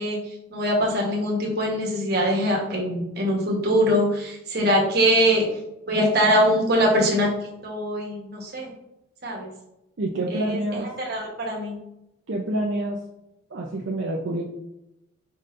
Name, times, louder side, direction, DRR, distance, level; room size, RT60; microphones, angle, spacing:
voice 1, 0.0-5.4 5.9-7.3 7.6-8.7 9.2-9.5 10.3-10.6 11.1-11.8, equal, 50° right, -1 dB, 1.2 m, -22 dB
voice 2, 10.0-10.9 12.3-13.0 13.5-14.4, right 1 dB, 65° right, -2 dB, 0.6 m, -27 dB
4.9 x 4.2 x 2.6 m, 0.87 s
head